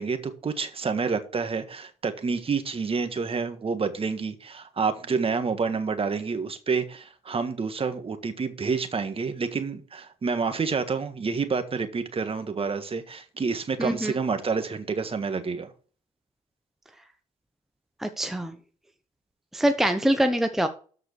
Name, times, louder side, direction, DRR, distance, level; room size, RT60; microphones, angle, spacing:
voice 1, 0.0-15.7, right 5 dB, 30° right, 1.6 m, -28 dB
voice 2, 13.8-14.1 18.0-18.6 19.5-20.7, right 1 dB, ahead, 1.0 m, -24 dB
13.0 x 4.9 x 4.5 m
supercardioid pair, 70°, 18 cm